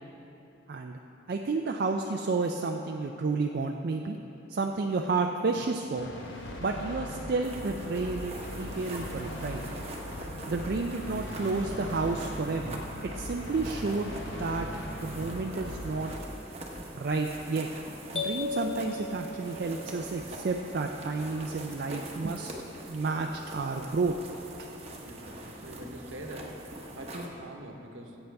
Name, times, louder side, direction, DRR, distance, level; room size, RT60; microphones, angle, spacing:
voice 1, 0.7-1.0 1.3-4.2 4.5-6.1 6.6-9.6 10.5-12.8 13.1-14.7 15.0-16.1 17.0-17.7 18.1-22.5 22.9-24.1 24.6-24.7, right 3 dB, 50° right, 3 dB, 0.4 m, -31 dB
sound 1, 6.0-16.2, left 1 dB, 60° left, 1.1 m, -39 dB
sound 2, 7.4-27.3, right 1 dB, 30° right, 1.0 m, -43 dB
sound 3, 18.2-20.1, left 4 dB, 30° left, 1.0 m, -35 dB
voice 2, 25.0-28.2, right 1 dB, 65° right, 3 dB, 1.1 m, -44 dB
16.0 x 8.0 x 3.4 m, 3.0 s
head